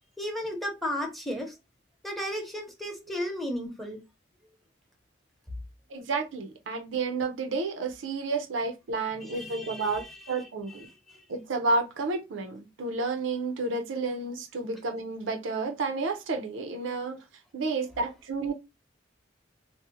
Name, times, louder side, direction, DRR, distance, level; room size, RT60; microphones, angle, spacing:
voice 1, 0.2-1.5 2.0-4.0 9.2-10.5 11.1-11.2, equal, ahead, 0.7 m, -34 dB
voice 2, 5.9-10.9 11.3-17.2 17.5-18.5, right 3 dB, 80° right, 0.5 m, -31 dB
2.6 x 2.0 x 3.7 m
head